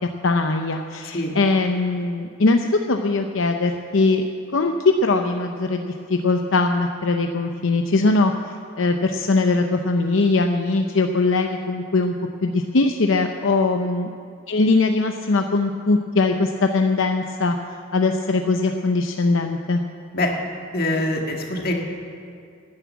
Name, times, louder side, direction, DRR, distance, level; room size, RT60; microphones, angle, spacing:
voice 1, 0.2-4.2 4.5-8.3 8.8-12.1 12.4-14.1 14.5-17.6 17.9-19.8, left 3 dB, 75° left, 5 dB, 0.7 m, -21 dB
voice 2, 20.7-21.7, left 1 dB, 50° left, 1 dB, 1.9 m, -23 dB
12.0 x 11.0 x 8.4 m, 2.4 s
head